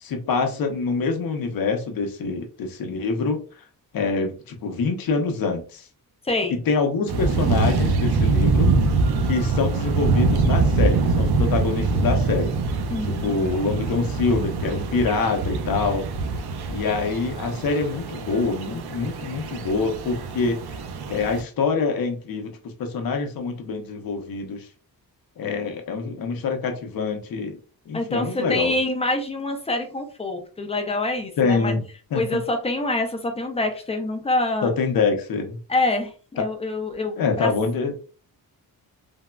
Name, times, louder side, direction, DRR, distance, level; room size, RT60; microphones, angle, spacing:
voice 1, 0.0-3.4 3.9-5.8 6.5-8.7 9.2-12.5 13.0-16.1 16.7-20.6 21.1-22.5 22.8-24.7 25.4-27.6 27.9-28.7 31.4-31.8 32.1-32.2 34.6-35.6 36.4-36.5 37.2-37.9, left 4 dB, 65° left, 4 dB, 0.7 m, -25 dB
voice 2, 6.3-6.6 12.9-13.4 27.9-31.7 32.1-34.7 35.7-37.5, left 2 dB, 15° left, 4 dB, 0.4 m, -26 dB
Mudflats Distant Birds and Wind, 7.1-21.4, right 3 dB, 85° right, 0.5 m, -24 dB
3.5 x 2.0 x 2.2 m, 0.38 s
wide cardioid pair, 145°, 38 cm